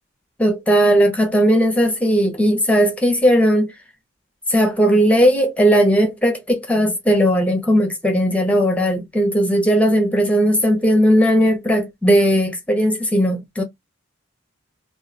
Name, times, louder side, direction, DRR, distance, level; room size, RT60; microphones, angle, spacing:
voice 1, 0.4-3.7 4.5-13.6, equal, 5° left, 0.5 m, -17 dB
3.0 x 2.2 x 2.6 m
head